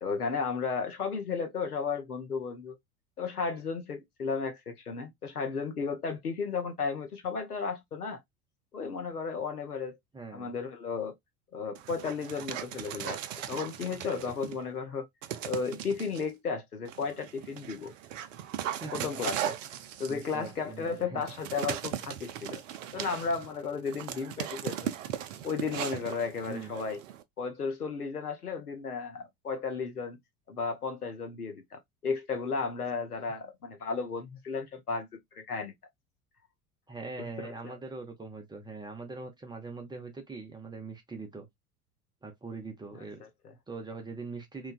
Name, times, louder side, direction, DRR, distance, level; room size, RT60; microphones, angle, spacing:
voice 1, 0.0-2.7 3.2-8.2 8.7-10.0 10.3-11.1 11.5-13.2 13.5-15.1 15.5-17.9 18.9-19.5 20.0-22.6 22.9-24.9 25.4-27.0 27.4-30.2 30.5-35.1 35.3-35.7 37.2-37.8 42.9-43.5, left 5 dB, 85° left, 0.7 m, -34 dB
voice 2, 10.1-10.5 18.8-19.1 20.1-21.2 26.5-26.7 36.9-41.5 42.2-43.2 43.7-44.7, right 3 dB, 10° right, 0.5 m, -42 dB
Dog, 11.7-14.6 15.2-16.2 16.9-27.2, right 11 dB, 60° right, 0.5 m, -38 dB
3.1 x 2.2 x 2.2 m
figure-of-eight pair, 75°, 45 cm